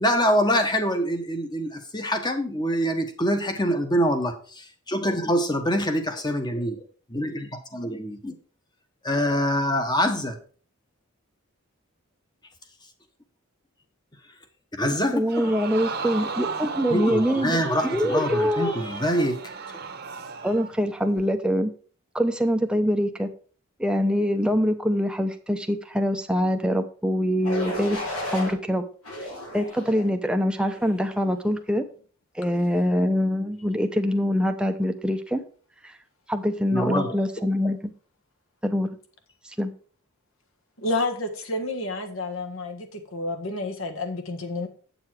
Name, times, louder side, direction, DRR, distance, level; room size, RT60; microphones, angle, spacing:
voice 1, 0.0-6.8 7.1-7.4 7.7-8.3 9.0-10.4 14.8-15.6 16.9-19.4 36.7-37.2, equal, 20° left, 6 dB, 1.2 m, -25 dB
voice 2, 15.1-18.7 20.4-21.7 22.1-23.3 23.8-28.8 29.5-31.8 32.3-35.4 35.8-36.0 36.3-37.9 38.6-38.9 39.4-39.7, equal, 5° right, 6 dB, 0.7 m, -24 dB
Crowd, 15.3-20.7 21.2-21.3, right 5 dB, 45° right, 1.1 m, -35 dB
sound 1, 27.4-28.5 29.0-30.1 30.7-31.0, left 1 dB, 80° left, 4.2 m, -33 dB
voice 3, 40.8-44.7, left 2 dB, 60° left, 5 dB, 1.5 m, -30 dB
8.7 x 6.9 x 4.6 m, 0.41 s
head